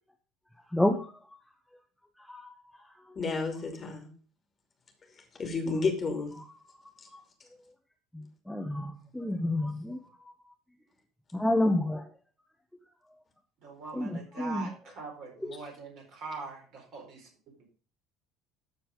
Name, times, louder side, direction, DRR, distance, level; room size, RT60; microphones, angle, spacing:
voice 1, 0.7-1.2 2.2-3.2 6.4-6.5 6.7-7.2 8.1-10.3 11.3-12.1 13.9-14.7 15.4-15.6, left 1 dB, 5° left, 4 dB, 1.1 m, -31 dB
voice 2, 3.2-4.1 5.4-6.4, left 4 dB, 35° left, 3 dB, 2.7 m, -31 dB
voice 3, 13.6-17.7, right 4 dB, 50° right, 0 dB, 4.5 m, -43 dB
13.0 x 4.7 x 5.3 m, 0.39 s
figure-of-eight pair, 60°, 0 cm